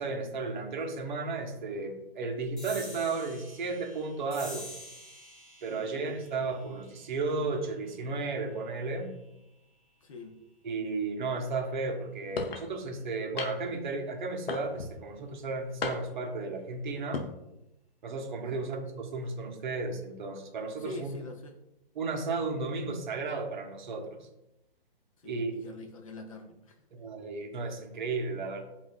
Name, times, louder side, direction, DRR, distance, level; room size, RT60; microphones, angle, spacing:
voice 1, 0.0-4.7 5.6-9.1 10.6-17.2 18.0-21.2 22.0-24.3 25.2-25.6 26.9-28.6, right 3 dB, 50° right, 3 dB, 0.8 m, -34 dB
sound 1, 2.6-9.4, equal, ahead, 0.8 m, -49 dB
voice 2, 5.7-6.0 10.0-10.4 18.5-18.7 20.8-21.6 25.2-26.8, left 2 dB, 35° left, 3 dB, 0.4 m, -45 dB
sound 2, 12.4-12.7 13.4-13.8 14.5-15.0 15.8-16.3 17.0-17.3, left 4 dB, 85° left, 0.6 m, -35 dB
7.3 x 2.4 x 2.2 m, 0.90 s
hypercardioid pair, 150°, 29 cm